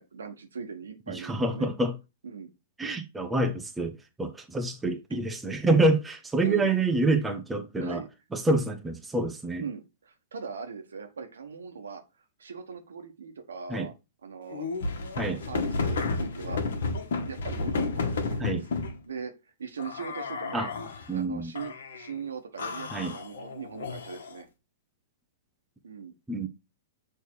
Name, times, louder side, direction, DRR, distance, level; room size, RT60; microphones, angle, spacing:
voice 1, 0.0-1.7 2.2-2.5 6.4-6.7 7.8-8.1 9.6-12.0 12.4-13.9 14.2-14.7 15.1-16.6 17.2-18.6 19.1-19.3 19.6-20.7 21.1-24.5 25.8-26.1, right 6 dB, 85° right, 1.3 m, -40 dB
voice 2, 1.1-1.9 2.8-8.0 8.3-9.6 13.7-13.9 15.2-15.4 18.4-18.6 20.5-20.7 21.1-21.5 22.9-23.1 26.3-26.5, right 2 dB, 10° right, 0.8 m, -27 dB
sound 1, 14.5-19.0 19.8-21.1 21.5-22.1 22.6-24.4, left 4 dB, 70° left, 1.4 m, -32 dB
6.5 x 3.4 x 4.5 m
hypercardioid pair, 125°, 0 cm